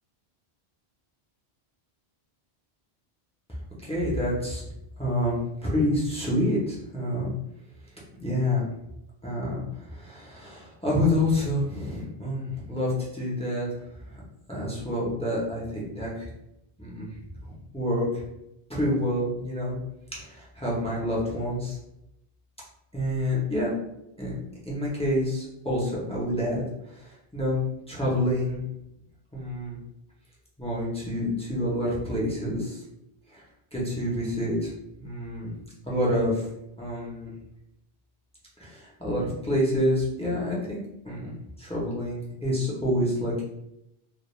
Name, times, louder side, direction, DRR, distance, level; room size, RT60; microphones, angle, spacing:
voice 1, 3.8-4.7 5.0-7.3 8.2-8.6 9.2-13.7 14.0-14.2 14.5-16.3 16.8-18.2 18.7-19.8 20.1-21.8 22.9-23.7 24.2-24.3 24.6-27.6 27.9-28.6 29.3-29.8 30.6-32.8 33.3-33.4 33.7-34.7 35.0-36.5 36.8-37.3 38.6-43.4, left 1 dB, 10° left, -6 dB, 0.4 m, -28 dB
2.3 x 2.1 x 3.0 m, 0.84 s
omnidirectional pair, 1.1 m